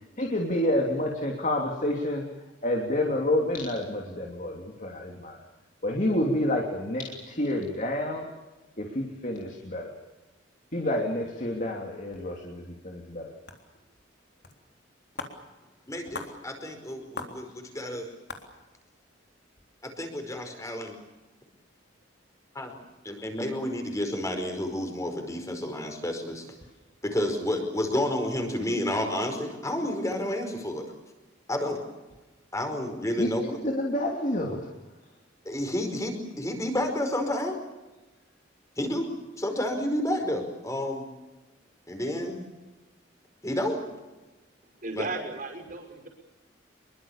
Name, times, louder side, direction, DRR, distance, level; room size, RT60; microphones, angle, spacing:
voice 1, 0.2-2.2 2.6-5.4 5.8-8.3 8.8-9.9 10.7-13.3 33.2-34.7, left 1 dB, 40° left, 1 dB, 3.0 m, -29 dB
sound 1, 13.5-13.6 14.4-14.5 14.8-14.9 15.2-15.4 16.1-16.3 17.2-17.4 17.9-18.0 18.3-18.4, left 3 dB, 55° left, 3.6 m, -37 dB
voice 2, 15.9-18.1 19.8-21.0 22.5-22.7 23.0-26.4 27.0-30.9 31.5-31.8 32.5-33.6 35.4-37.5 38.8-39.1 39.4-41.1 41.9-42.4 43.4-43.8 44.9-45.1, left 1 dB, 15° left, 5 dB, 5.0 m, -30 dB
voice 3, 44.8-46.1, right 2 dB, 45° right, 4 dB, 5.9 m, -34 dB
26.5 x 23.5 x 7.3 m, 1.1 s
head